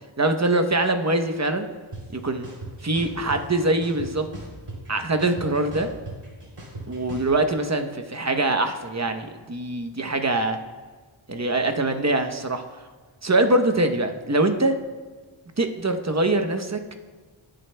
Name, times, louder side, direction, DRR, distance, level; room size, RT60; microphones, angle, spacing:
voice 1, 0.2-1.7 2.1-2.5 2.8-4.2 4.9-5.9 6.9-10.6 11.3-12.6 13.2-14.8 15.6-16.8, right 2 dB, 35° right, 7 dB, 0.9 m, -23 dB
sound 1, 1.9-2.0 2.4-3.4 3.8-4.9 5.2-7.3, right 2 dB, 85° right, 3.2 m, -37 dB
18.5 x 7.8 x 2.2 m, 1.4 s
wide cardioid pair, 50°, 50 cm